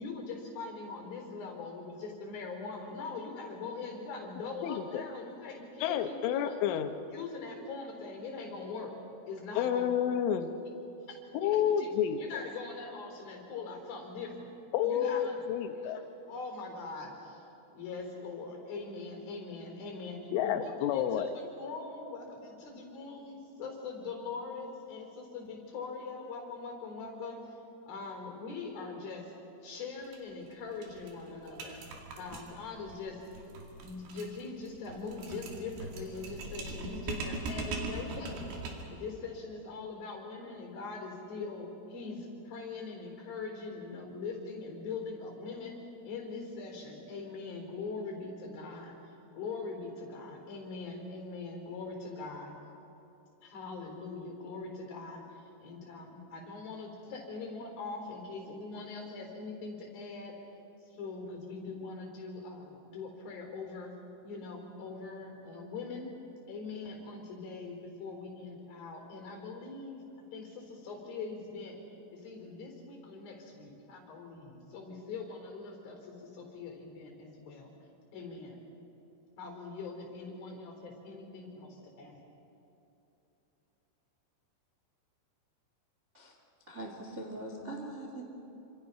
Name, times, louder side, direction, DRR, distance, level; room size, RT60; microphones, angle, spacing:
voice 1, 0.0-6.6 7.1-9.0 9.3-9.9 11.1-11.9 12.2-14.5 14.8-15.4 15.7-15.9 16.3-17.4 17.7-21.3 21.6-27.6 27.8-29.3 29.6-31.8 32.2-33.5 33.8-38.4 38.9-52.6 53.4-60.3 60.9-63.9 64.2-66.1 66.5-70.0 70.3-71.8 72.1-77.7 78.1-78.6 79.4-82.3, left 4 dB, 55° left, 2 dB, 5.6 m, -42 dB
voice 2, 4.6-5.0 5.8-6.9 9.6-10.5 11.3-12.2 14.7-16.0 20.3-21.3, left 9 dB, 85° left, 8 dB, 3.5 m, -30 dB
sound 1, 30.1-30.2 30.5-30.6 30.8-39.0, right 3 dB, 65° right, 4.3 m, -41 dB
voice 3, 86.7-88.2, right 1 dB, 30° right, 0 dB, 1.4 m, -42 dB
28.0 x 26.5 x 5.7 m, 3.0 s
omnidirectional pair, 5.4 m